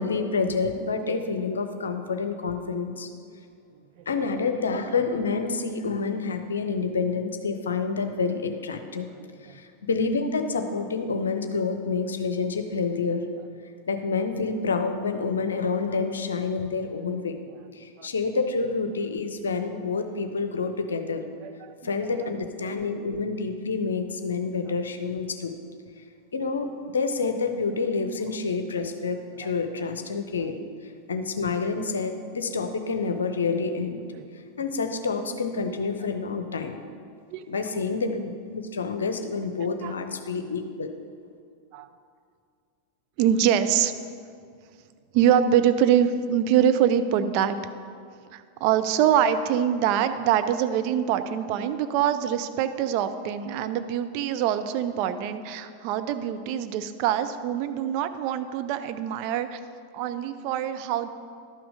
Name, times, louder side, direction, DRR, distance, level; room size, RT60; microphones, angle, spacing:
voice 1, 0.0-3.1 4.1-9.1 9.5-13.2 13.9-17.4 17.7-21.2 21.8-25.5 26.3-30.6 31.1-34.0 34.6-36.8 37.5-38.2 38.5-40.9, left 4 dB, 70° left, 7 dB, 0.7 m, -28 dB
voice 2, 9.2-9.6 18.0-18.1 21.4-21.9 22.2-22.3 22.6-22.7 29.4-29.5 34.2-34.3 37.3-37.4 39.8-39.9 40.3-40.4 41.7-41.9 43.2-43.9 45.1-47.6 48.3-59.6 59.9-61.1, right 9 dB, 45° right, 10 dB, 0.5 m, -24 dB
11.5 x 6.0 x 4.9 m, 2.3 s
figure-of-eight pair, 90°, 0 cm